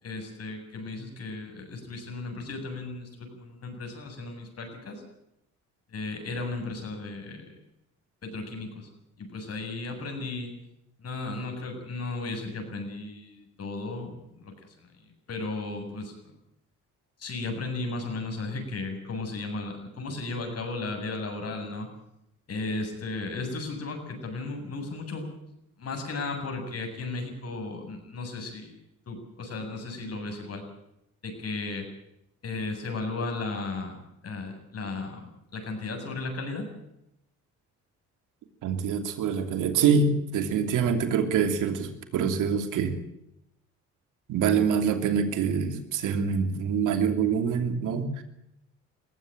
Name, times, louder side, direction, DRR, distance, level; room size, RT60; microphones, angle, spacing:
voice 1, 0.0-5.0 5.9-7.5 8.2-8.9 9.2-10.5 11.0-14.9 15.3-16.3 17.2-21.9 22.5-25.3 25.8-28.7 29.1-30.6 31.2-31.9 32.4-34.0 34.2-36.7, left 3 dB, 55° left, 4 dB, 7.8 m, -35 dB
voice 2, 38.6-43.0 44.3-48.2, right 6 dB, 85° right, 7 dB, 3.0 m, -25 dB
21.0 x 16.0 x 9.0 m, 0.82 s
cardioid pair, 90°, 30 cm